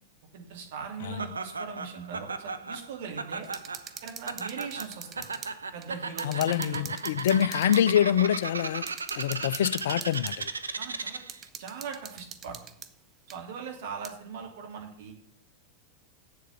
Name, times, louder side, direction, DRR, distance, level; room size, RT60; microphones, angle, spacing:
voice 1, 0.3-3.5 4.0-5.2 5.7-6.9 7.2-7.4 10.8-11.2 11.6-12.6 13.3-15.1, right 5 dB, 55° right, 3.0 m, -40 dB
Laughter, 1.2-11.4, right 4 dB, 75° right, 0.6 m, -36 dB
sound 1, 3.4-5.5 5.8-5.9 6.2-7.8 8.4-8.5 8.9-10.5 11.3-12.9 13.3-13.4 14.0-14.1, right 7 dB, 25° right, 0.8 m, -43 dB
voice 2, 6.2-8.8 9.2-10.5, left 10 dB, 60° left, 0.4 m, -25 dB
7.9 x 7.5 x 8.6 m
figure-of-eight pair, 90°, 0 cm